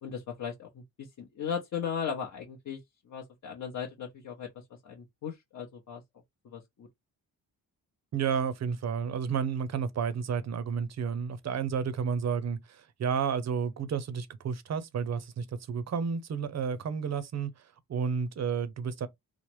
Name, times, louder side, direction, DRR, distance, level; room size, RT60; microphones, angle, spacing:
voice 1, 0.0-2.8 3.1-4.5 4.8-6.0 6.4-6.9, left 7 dB, 55° left, 0.7 m, -37 dB
voice 2, 8.1-17.5 17.9-19.1, right 6 dB, 45° right, 0.5 m, -31 dB
3.1 x 2.0 x 3.0 m
cardioid pair, 90°, 36 cm